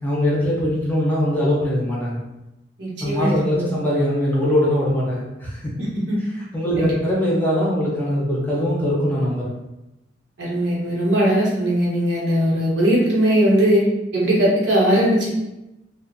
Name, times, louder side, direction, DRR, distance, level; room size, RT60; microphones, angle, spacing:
voice 1, 0.0-2.2 3.0-5.7 6.5-9.5, equal, 10° left, -6 dB, 0.6 m, -21 dB
voice 2, 2.8-3.7 6.1-6.2 6.7-6.9 10.4-13.8 14.1-15.3, equal, 80° right, -5 dB, 0.9 m, -19 dB
2.4 x 2.1 x 2.6 m, 0.95 s
head